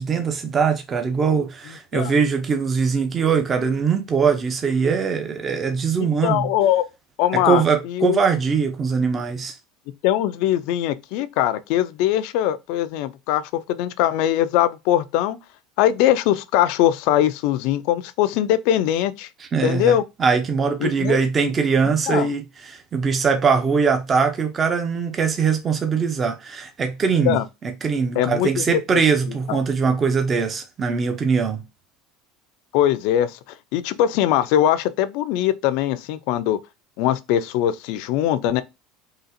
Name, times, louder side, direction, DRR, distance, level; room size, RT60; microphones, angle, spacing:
voice 1, 0.0-6.5 7.3-9.6 19.4-27.4 27.8-31.6, right 5 dB, 25° right, 0.5 m, -21 dB
voice 2, 6.2-6.8 7.2-8.2 10.0-15.4 15.8-19.3 19.6-20.0 20.8-21.2 22.1-22.3 27.2-27.4 28.2-28.8 29.5-29.6 32.7-33.4 33.7-36.6 37.0-38.6, left 11 dB, 65° left, 0.4 m, -21 dB
3.8 x 2.4 x 2.6 m
supercardioid pair, 135°, 0 cm